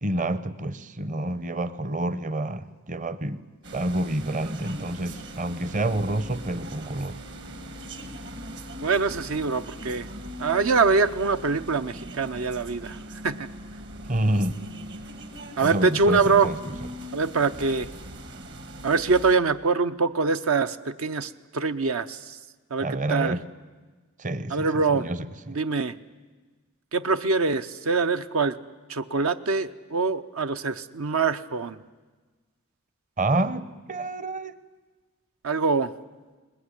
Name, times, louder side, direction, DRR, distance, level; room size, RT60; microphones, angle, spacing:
voice 1, 0.0-3.4 3.7-7.2 14.1-14.6 15.6-16.6 22.8-23.4 24.2-25.2 25.5-25.6 33.2-34.5, right 1 dB, 35° right, 14 dB, 0.9 m, -28 dB
sound 1, 3.6-19.4, right 1 dB, 55° right, 1.9 m, -40 dB
voice 2, 8.8-10.1 10.4-13.0 13.2-13.5 15.6-16.5 17.1-17.9 18.8-22.4 22.7-23.4 24.5-25.1 25.5-26.0 26.9-28.6 28.9-31.8 35.4-35.9, right 4 dB, 75° right, 10 dB, 0.8 m, -24 dB
22.0 x 20.5 x 9.9 m, 1.3 s
head